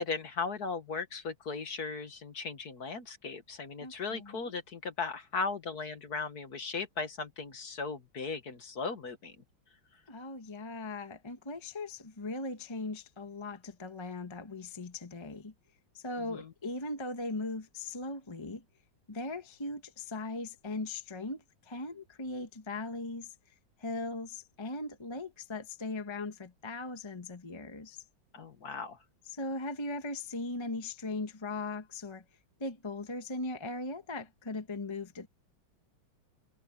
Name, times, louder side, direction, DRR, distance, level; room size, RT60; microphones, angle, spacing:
voice 1, 0.0-9.3 16.3-16.5 28.3-29.0, left 4 dB, 50° left, 2.0 m, -37 dB
voice 2, 3.8-4.5 10.1-15.5 15.9-18.6 19.1-23.3 23.8-28.0 29.3-32.2 32.6-35.3, left 2 dB, 15° left, 1.1 m, -39 dB
omnidirectional pair, 2.2 m